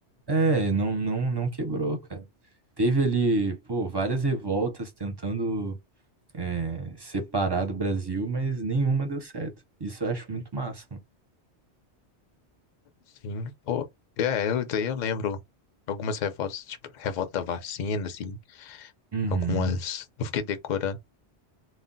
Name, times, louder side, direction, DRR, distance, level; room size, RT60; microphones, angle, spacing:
voice 1, 0.3-2.2 2.8-5.8 6.3-9.5 9.8-11.0 19.1-19.7, right 3 dB, 35° right, 0.4 m, -27 dB
voice 2, 13.2-13.8 14.2-15.4 15.9-18.9 19.3-21.0, left 6 dB, 55° left, 0.6 m, -30 dB
2.2 x 2.1 x 3.8 m
omnidirectional pair, 1.1 m